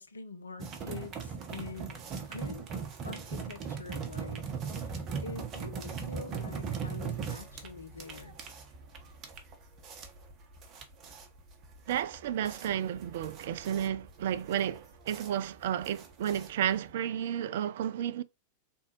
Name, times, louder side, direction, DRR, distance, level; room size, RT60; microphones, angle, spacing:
voice 1, 0.0-2.7 3.0-8.4, left 4 dB, 75° left, 0.7 m, -45 dB
sound 1, 0.6-16.9, right 6 dB, 30° right, 1.1 m, -39 dB
voice 2, 11.9-18.2, right 10 dB, 55° right, 0.4 m, -32 dB
4.1 x 3.6 x 2.9 m
figure-of-eight pair, 90°, 0 cm